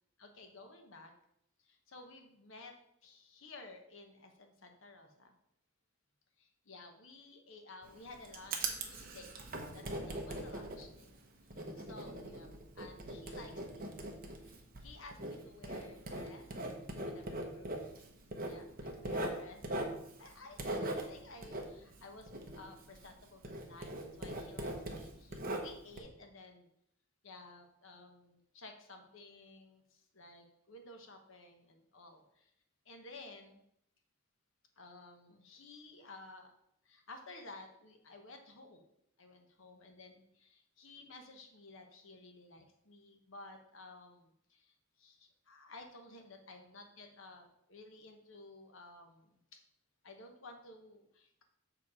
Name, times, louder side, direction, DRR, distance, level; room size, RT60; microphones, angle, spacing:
voice 1, 0.2-1.1 1.6-2.7 3.0-5.3 6.4-9.3 9.7-11.1 11.7-12.5 12.7-13.9 14.4-16.5 17.0-19.8 20.2-26.7 27.2-32.5 32.8-33.6 34.8-36.5 36.8-38.8 39.2-49.4 50.0-51.4, left 2 dB, 65° left, 4 dB, 1.1 m, -54 dB
Writing, 7.8-23.2 23.4-26.0, right 1 dB, 40° right, 1.0 m, -41 dB
6.9 x 4.8 x 4.9 m, 0.73 s
head